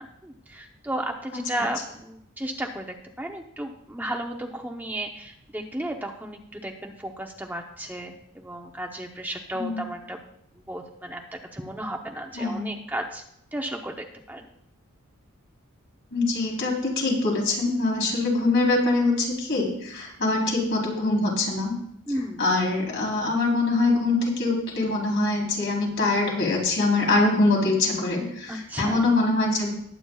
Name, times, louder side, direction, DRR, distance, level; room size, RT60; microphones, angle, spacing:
voice 1, 0.0-10.2 10.7-11.2 11.5-13.2 13.5-14.5 22.1-22.5 28.5-29.0, right 1 dB, 10° right, 2 dB, 0.8 m, -34 dB
voice 2, 12.4-12.7 16.1-21.7 22.4-29.7, left 2 dB, 55° left, -2 dB, 3.6 m, -23 dB
20.0 x 8.9 x 2.3 m, 0.73 s
head